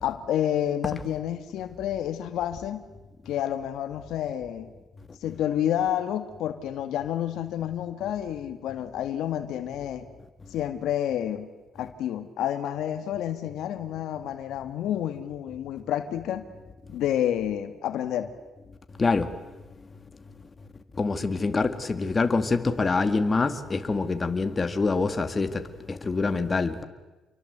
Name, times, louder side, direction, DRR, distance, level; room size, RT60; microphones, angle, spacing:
voice 1, 0.0-2.9 3.3-4.7 5.2-10.1 10.5-11.5 11.8-16.5 16.9-18.3, left 11 dB, 85° left, 1.9 m, -29 dB
voice 2, 19.0-19.3 21.0-26.8, left 3 dB, 30° left, 2.1 m, -25 dB
28.5 x 23.5 x 8.1 m
cardioid pair, 90°, 0 cm